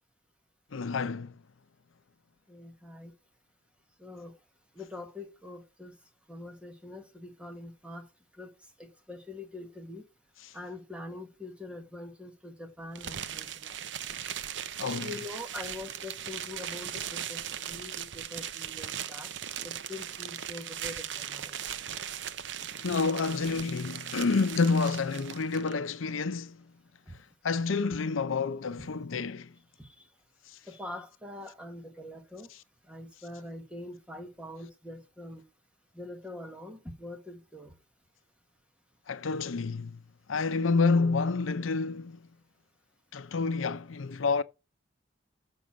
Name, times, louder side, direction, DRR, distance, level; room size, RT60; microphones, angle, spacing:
voice 1, 0.7-1.3 10.4-10.5 14.8-15.1 22.8-26.6 27.4-29.5 39.1-40.0 40.3-42.2 43.1-44.4, left 4 dB, 85° left, 0.6 m, -28 dB
voice 2, 2.5-3.1 4.0-4.3 4.7-6.0 6.3-8.1 8.4-8.5 8.8-10.0 10.5-13.7 15.0-17.4 17.7-19.3 19.6-21.6 27.1-27.2 29.8-29.9 30.7-32.5 32.9-35.4 35.9-37.7, left 2 dB, 5° right, 1.6 m, -44 dB
sound 1, 13.0-25.7, right 9 dB, 65° right, 0.7 m, -38 dB
6.7 x 6.2 x 7.4 m
head